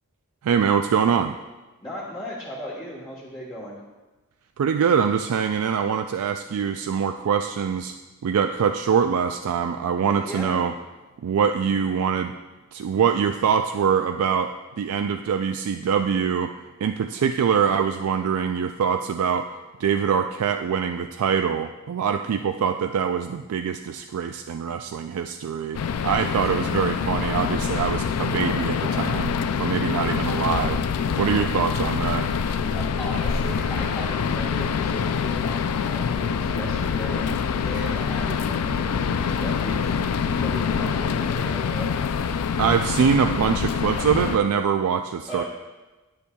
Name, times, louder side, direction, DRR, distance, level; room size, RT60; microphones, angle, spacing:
voice 1, 0.4-1.4 4.6-7.9 8.2-10.7 11.2-12.3 12.7-16.5 16.8-19.5 19.8-30.8 31.2-32.6 42.6-45.4, right 7 dB, 80° right, 6 dB, 0.3 m, -24 dB
voice 2, 1.8-3.8 10.1-10.6 31.1-31.3 32.4-37.2 37.6-41.9 45.3-45.4, equal, 20° left, -8 dB, 1.3 m, -37 dB
sound 1, 25.7-44.4, left 6 dB, 90° left, 0.4 m, -25 dB
10.0 x 9.5 x 2.3 m, 1.1 s
head